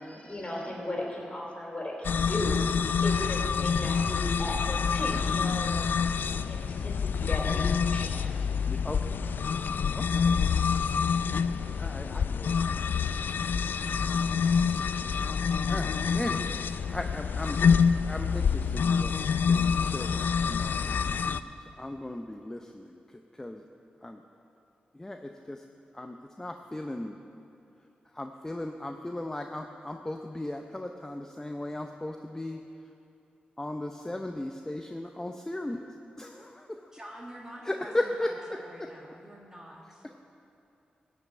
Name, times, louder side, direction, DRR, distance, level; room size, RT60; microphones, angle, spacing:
voice 1, 0.0-2.6 3.0-8.5, left 1 dB, 35° left, -1 dB, 3.3 m, -36 dB
sound 1, 2.0-21.4, left 6 dB, 75° left, 0.3 m, -27 dB
voice 2, 8.7-9.2 10.0-10.3 11.8-12.8 15.7-17.6 18.0-19.1 19.5-21.4 21.8-23.0 23.4-23.6 24.0-24.2 25.0-25.6 25.9-27.2 28.1-32.6 33.6-35.9 36.2-36.8 37.6-38.9 40.0-40.2, left 1 dB, 15° left, 4 dB, 0.6 m, -37 dB
voice 3, 36.9-37.9 38.2-40.0, equal, 20° right, -3 dB, 1.6 m, -47 dB
14.0 x 5.5 x 8.6 m, 2.7 s
cardioid pair, 50°, 3 cm